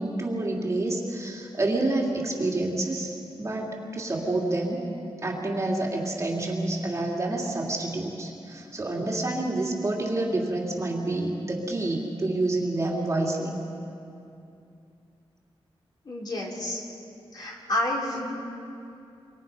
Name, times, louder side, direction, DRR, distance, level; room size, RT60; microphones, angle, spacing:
voice 1, 0.0-4.8 5.2-13.6, right 2 dB, 30° right, -1 dB, 2.7 m, -28 dB
voice 2, 16.1-16.8 17.3-18.2, left 1 dB, 45° left, -3 dB, 4.1 m, -29 dB
28.0 x 24.5 x 5.5 m, 2.6 s
wide cardioid pair, 175°, 10 cm